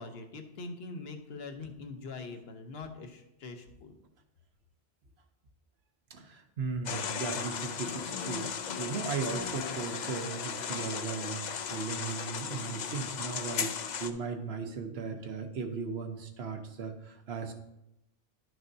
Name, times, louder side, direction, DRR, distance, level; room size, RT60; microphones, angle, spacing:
voice 1, 0.0-4.0, left 3 dB, 70° left, 6 dB, 1.1 m, -43 dB
voice 2, 6.1-17.5, right 5 dB, 75° right, 6 dB, 1.1 m, -37 dB
sound 1, 6.9-14.1, left 7 dB, 55° left, 0.6 m, -36 dB
11.5 x 6.2 x 2.7 m, 0.86 s
omnidirectional pair, 1.1 m